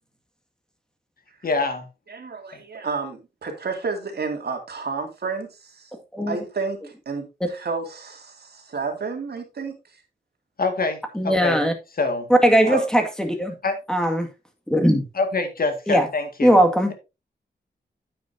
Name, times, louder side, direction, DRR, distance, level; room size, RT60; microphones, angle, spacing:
voice 1, 1.4-1.9 10.6-11.6 12.0-12.3 12.6-12.7 13.6-13.8 15.2-16.6, left 3 dB, 55° left, 1.9 m, -25 dB
voice 2, 2.1-5.9 6.3-9.7 12.7-12.9, right 4 dB, 65° right, 2.4 m, -31 dB
voice 3, 11.2-11.7 12.4-13.5 13.9-14.3 14.7-15.0 15.9-16.1 16.4-16.9, equal, 5° left, 2.0 m, -19 dB
9.5 x 8.9 x 2.7 m
wide cardioid pair, 115°, 18 cm